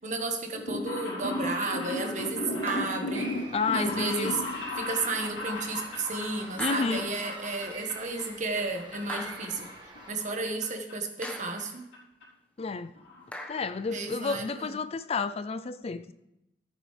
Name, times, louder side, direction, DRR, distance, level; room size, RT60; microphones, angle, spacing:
voice 1, 0.0-3.3 3.7-4.4 4.8-9.7 10.1-11.9 13.9-14.7, right 3 dB, 45° right, 1.5 m, -33 dB
sound 1, 0.5-8.3 8.5-9.2 9.6-10.6 10.9-11.0 11.9-12.0 12.2-12.3 12.6-12.7 13.0-13.2 13.6-13.7 13.9-14.0, left 1 dB, 70° left, 3.6 m, -35 dB
sound 2, 2.7-3.2 4.8-4.9 6.6-7.3 9.1-9.8 11.2-11.8 13.3-13.9, left 1 dB, 10° left, 1.3 m, -41 dB
sound 3, 3.1-10.1, right 2 dB, 25° right, 1.6 m, -47 dB
voice 2, 3.5-4.4 6.6-7.1 12.6-12.9 13.5-16.1, left 4 dB, 35° left, 0.4 m, -30 dB
14.0 x 9.2 x 3.4 m
head